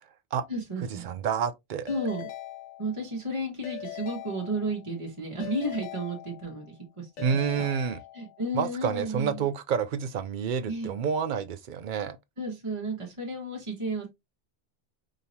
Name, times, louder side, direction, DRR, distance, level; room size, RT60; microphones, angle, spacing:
voice 1, 0.5-1.1 1.9-2.3 2.8-7.1 7.5-7.7 8.1-9.5 10.7-10.9 12.4-14.1, right 1 dB, 30° right, 1.3 m, -33 dB
voice 2, 1.0-1.9 7.2-8.0 8.5-12.2, right 7 dB, 60° right, 0.5 m, -29 dB
Keyboard (musical) / Ringtone, 1.9-3.2 3.6-5.0 5.4-6.7 7.2-8.5, left 11 dB, 90° left, 1.0 m, -41 dB
5.1 x 2.9 x 2.7 m
omnidirectional pair, 1.2 m